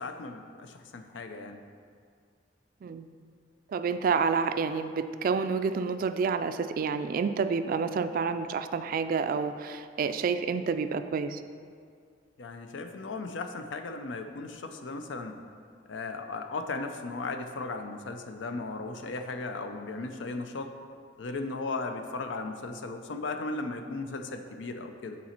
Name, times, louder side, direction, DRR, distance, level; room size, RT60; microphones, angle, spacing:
voice 1, 0.0-1.6 12.4-15.4 15.9-20.7 21.2-25.2, left 3 dB, 85° left, 6 dB, 0.5 m, -36 dB
voice 2, 3.7-11.4, right 5 dB, 50° right, 10 dB, 0.3 m, -29 dB
8.5 x 4.0 x 4.3 m, 2.1 s
head